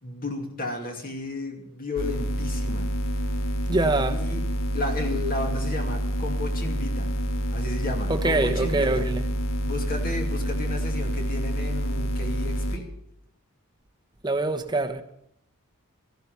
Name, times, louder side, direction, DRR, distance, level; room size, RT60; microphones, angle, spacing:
voice 1, 0.0-2.9 4.1-4.4 4.7-7.1 7.5-9.1 9.7-12.9, left 2 dB, 40° left, 2.6 m, -33 dB
sound 1, 2.0-12.8, equal, 70° left, 1.6 m, -27 dB
voice 2, 3.7-4.2 8.1-9.3 14.2-15.0, right 2 dB, 20° right, 1.0 m, -24 dB
15.0 x 12.0 x 6.9 m
head